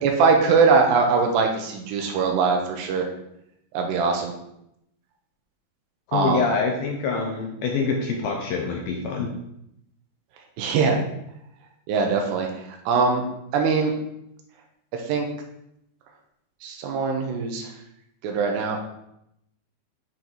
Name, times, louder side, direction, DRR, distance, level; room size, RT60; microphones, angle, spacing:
voice 1, 0.0-3.1 3.7-4.3 6.1-6.4 10.6-11.0 11.9-12.5 12.9-13.2 13.5-13.9 15.1-15.3 16.6-17.7 18.2-18.9, right 5 dB, 80° right, 2 dB, 3.1 m, -21 dB
voice 2, 6.1-9.3, left 4 dB, 75° left, 1 dB, 2.2 m, -25 dB
9.8 x 4.6 x 4.0 m, 0.79 s
omnidirectional pair, 4.9 m